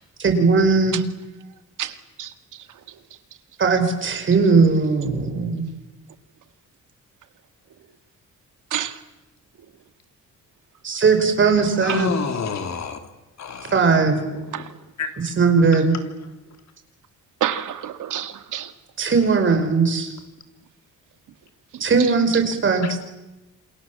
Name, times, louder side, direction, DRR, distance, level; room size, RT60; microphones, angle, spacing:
voice 1, 0.2-1.0 3.6-5.7 10.8-12.1 13.7-14.2 15.2-15.9 19.0-20.1 21.8-23.0, right 4 dB, 40° right, 5.5 m, -18 dB
voice 2, 1.8-2.3 8.7-9.0 11.9-12.0 14.5-14.7 17.4-18.7 21.7-21.8, right 10 dB, 80° right, 2.1 m, -28 dB
voice 3, 11.8-13.0 13.4-14.1 15.0-15.1 22.8-22.9, left 5 dB, 60° left, 3.5 m, -28 dB
28.0 x 28.0 x 7.5 m
wide cardioid pair, 150°, 31 cm